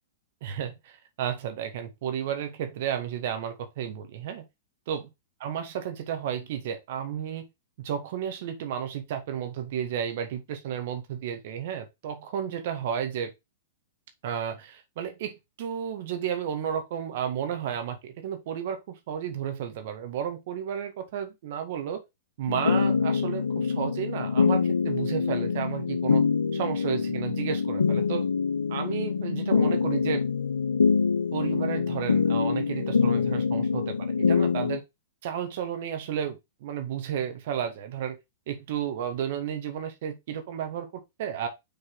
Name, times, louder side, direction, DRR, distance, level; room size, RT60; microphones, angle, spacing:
voice 1, 0.4-4.5 4.9-5.1 5.4-7.5 7.8-13.3 14.2-22.0 22.4-26.2 26.5-28.3 28.7-30.2 31.3-34.8 35.2-38.2 38.5-41.5, right 9 dB, 55° right, 1.7 m, -32 dB
sound 1, 22.5-34.8, left 5 dB, 85° left, 0.6 m, -25 dB
7.2 x 4.0 x 3.9 m
hypercardioid pair, 110°, 0 cm